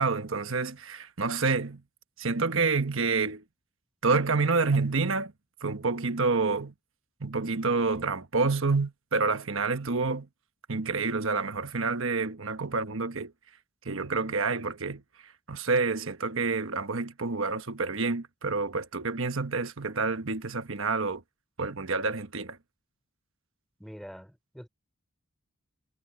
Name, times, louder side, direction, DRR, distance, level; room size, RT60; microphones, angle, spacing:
voice 1, 0.0-1.8 2.2-3.4 4.0-5.3 5.6-6.7 7.2-10.3 10.7-13.3 13.8-15.0 15.5-21.2 21.6-22.6, right 4 dB, 60° right, 1.2 m, -28 dB
voice 2, 23.8-24.7, equal, ahead, 3.9 m, -45 dB
head